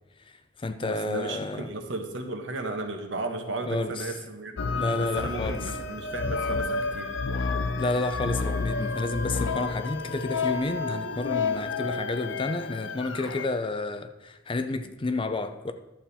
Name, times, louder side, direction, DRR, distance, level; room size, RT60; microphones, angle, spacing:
voice 1, 0.3-1.7 3.7-4.1 4.7-5.6 7.8-15.7, left 2 dB, 25° left, 0.5 m, -30 dB
voice 2, 0.8-4.6 5.0-7.1, right 2 dB, 75° right, 1.3 m, -35 dB
sound 1, 4.6-13.5, left 4 dB, 75° left, 0.6 m, -30 dB
11.5 x 7.4 x 4.2 m
head